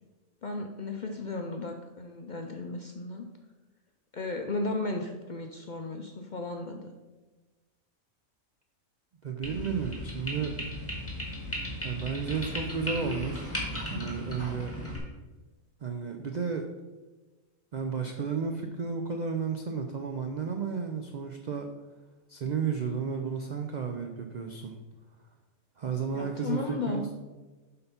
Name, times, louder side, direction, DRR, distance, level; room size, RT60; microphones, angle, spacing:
voice 1, 0.4-3.3 4.1-6.9 26.1-27.0, left 3 dB, 60° left, 3 dB, 0.4 m, -35 dB
voice 2, 9.2-10.5 11.8-13.6 13.9-14.7 15.8-16.6 17.7-21.7 22.3-24.8 25.8-26.6 26.9-27.0, right 6 dB, 70° right, 4 dB, 0.4 m, -32 dB
sound 1, 9.4-15.0, equal, 10° left, 1.7 m, -36 dB
7.7 x 3.8 x 5.7 m, 1.2 s
omnidirectional pair, 1.4 m